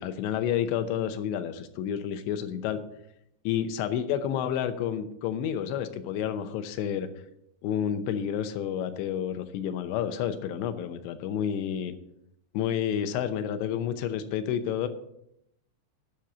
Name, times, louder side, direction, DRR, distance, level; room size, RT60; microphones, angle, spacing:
voice 1, 0.0-2.8 3.5-7.1 7.6-11.9 12.5-14.9, left 9 dB, 80° left, 10 dB, 2.9 m, -30 dB
10.5 x 6.5 x 6.9 m, 0.77 s
omnidirectional pair, 5.4 m